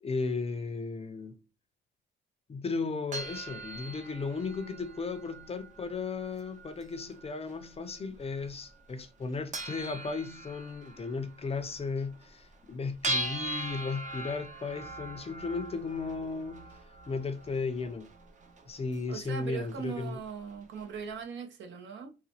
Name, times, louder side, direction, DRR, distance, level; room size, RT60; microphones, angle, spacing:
voice 1, 0.0-1.4 2.5-16.7 17.1-18.1 18.7-20.2, left 4 dB, 30° left, 0.5 m, -35 dB
sound 1, 3.1-21.0, right 2 dB, 40° right, 0.7 m, -42 dB
voice 2, 19.1-22.2, right 6 dB, 70° right, 0.8 m, -40 dB
3.9 x 2.1 x 2.8 m
cardioid pair, 90°, 20 cm